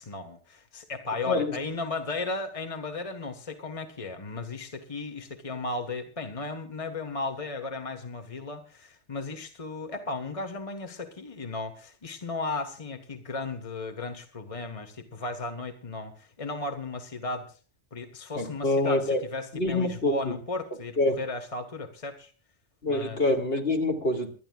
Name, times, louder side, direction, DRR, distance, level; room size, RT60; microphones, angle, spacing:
voice 1, 0.0-17.6 17.9-22.3 22.9-23.2, left 3 dB, 30° left, 1.5 m, -35 dB
voice 2, 1.2-1.6 18.4-19.2 19.5-20.3 21.0-21.2 22.8-24.3, left 2 dB, 55° left, 2.8 m, -26 dB
29.5 x 12.5 x 2.4 m
omnidirectional pair, 1.2 m